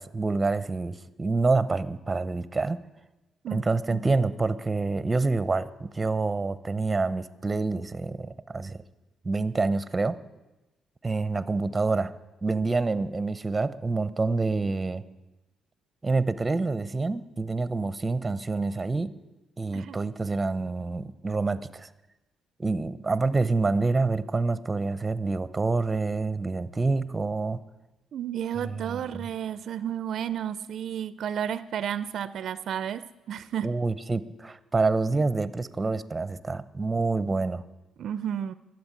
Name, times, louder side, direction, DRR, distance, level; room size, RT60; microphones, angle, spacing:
voice 1, 0.0-2.8 3.5-8.8 9.2-10.2 11.0-12.1 12.4-15.0 16.0-19.1 19.6-21.9 22.6-27.6 28.6-29.2 33.6-37.6, right 3 dB, 20° right, 16 dB, 0.7 m, -27 dB
voice 2, 3.4-4.0 19.7-20.0 28.1-33.7 38.0-38.5, right 9 dB, 65° right, 15 dB, 0.4 m, -32 dB
12.5 x 7.8 x 9.6 m, 1.1 s
cardioid pair, 90°, 0 cm